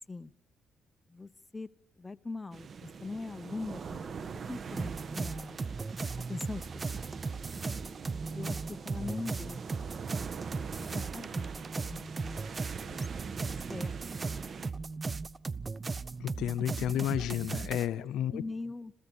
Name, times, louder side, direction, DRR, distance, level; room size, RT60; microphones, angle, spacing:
voice 1, 1.1-1.7 2.0-5.6 6.3-6.7 6.9-7.1 8.3-9.6 10.8-11.4 11.7-12.4 12.8-14.3 18.0-18.9, left 3 dB, 15° left, 13 dB, 0.8 m, -42 dB
sound 1, 2.5-14.7, right 6 dB, 50° right, 1.2 m, -43 dB
sound 2, 4.8-17.9, right 4 dB, 30° right, 0.7 m, -37 dB
voice 2, 16.2-18.4, left 11 dB, 85° left, 14 dB, 0.7 m, -31 dB
27.0 x 16.0 x 7.1 m, 0.91 s
cardioid pair, 90°, 0 cm